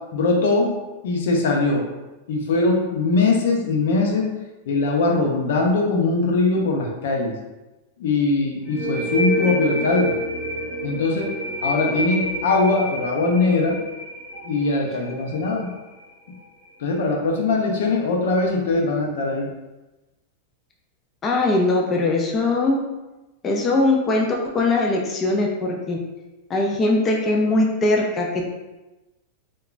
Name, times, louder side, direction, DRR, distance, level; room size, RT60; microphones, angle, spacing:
voice 1, 0.1-0.8 1.0-1.8 2.3-4.3 4.7-7.4 8.0-10.2 10.8-11.3 11.6-13.8 14.4-15.7 16.8-19.5, left 3 dB, 75° left, 0 dB, 0.6 m, -21 dB
sound 1, 8.7-16.1, equal, 20° right, 1.3 m, -29 dB
voice 2, 21.2-22.8 23.4-26.0 26.5-28.5, left 2 dB, 20° left, 0 dB, 0.3 m, -21 dB
2.8 x 2.3 x 2.4 m, 1.1 s
supercardioid pair, 135°, 0 cm